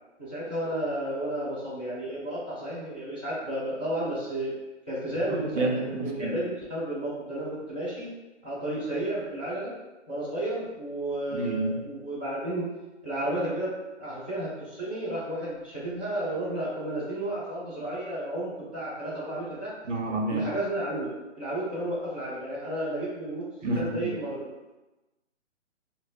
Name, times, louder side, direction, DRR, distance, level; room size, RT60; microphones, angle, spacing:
voice 1, 0.2-4.5 4.9-8.1 8.4-9.7 10.1-12.7 13.0-13.7 14.0-19.7 20.3-21.1 21.4-23.4 23.7-24.5, right 1 dB, 10° right, -12 dB, 0.3 m, -32 dB
voice 2, 5.3-6.3 11.3-11.8 19.9-20.4 23.6-23.9, right 2 dB, 80° right, 2 dB, 0.8 m, -29 dB
4.6 x 2.0 x 2.5 m, 1.1 s
hypercardioid pair, 145°, 36 cm